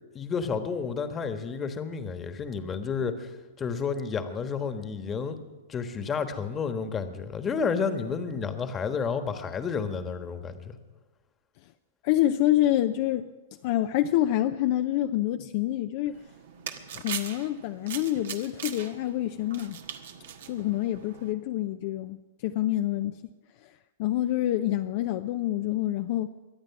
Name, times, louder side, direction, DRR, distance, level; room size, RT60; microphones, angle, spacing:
voice 1, 0.1-5.4 5.7-10.8, left 5 dB, 20° left, 8 dB, 1.3 m, -31 dB
voice 2, 12.0-13.3 13.6-16.2 16.9-19.8 20.5-22.2 22.4-23.2 24.0-26.3, left 13 dB, 50° left, 8 dB, 0.5 m, -27 dB
sound 1, 16.1-21.3, right 8 dB, 70° right, 1.3 m, -40 dB
23.0 x 8.7 x 5.9 m, 1.3 s
hypercardioid pair, 120°, 0 cm